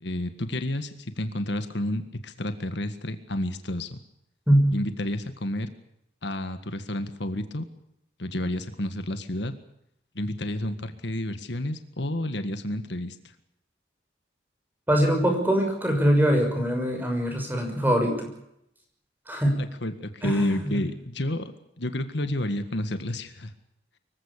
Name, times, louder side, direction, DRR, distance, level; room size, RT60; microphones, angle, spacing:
voice 1, 0.0-4.0 4.7-5.7 6.2-7.6 8.2-9.5 10.2-13.2 19.6-23.5, left 1 dB, 70° left, 9 dB, 1.8 m, -30 dB
voice 2, 14.9-18.3 19.3-19.6 20.2-20.8, equal, 10° right, 3 dB, 6.2 m, -23 dB
24.5 x 16.0 x 8.4 m, 0.80 s
head